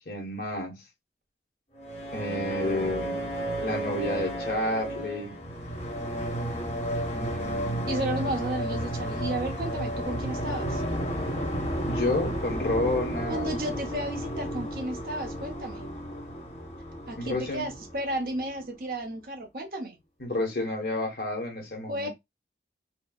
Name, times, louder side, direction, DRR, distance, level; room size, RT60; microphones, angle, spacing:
voice 1, 0.1-0.7 2.1-3.2 3.6-5.3 7.1-7.9 11.9-13.6 17.2-17.7 20.2-22.1, left 2 dB, 55° left, 1.3 m, -30 dB
sound 1, 1.8-18.6, right 1 dB, 40° left, 1.4 m, -32 dB
voice 2, 7.9-10.8 13.3-15.8 17.1-20.0 21.9-22.1, right 1 dB, 55° right, 0.8 m, -33 dB
4.4 x 2.1 x 2.3 m
head